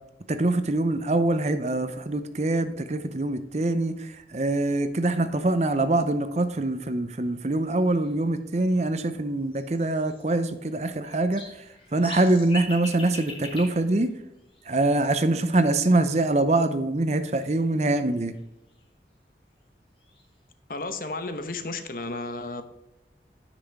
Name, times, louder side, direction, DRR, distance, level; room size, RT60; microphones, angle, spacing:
voice 1, 0.3-11.4 11.9-14.1 14.7-18.3, right 2 dB, 40° right, 0.6 m, -24 dB
sound 1, 7.5-7.6 7.8-8.1 9.5-10.7 11.0-14.9 17.1-18.9 19.6-19.7 20.0-20.3, left 2 dB, 30° left, 2.3 m, -43 dB
voice 2, 20.7-22.6, left 3 dB, 50° left, 0.9 m, -33 dB
9.9 x 6.1 x 4.6 m
head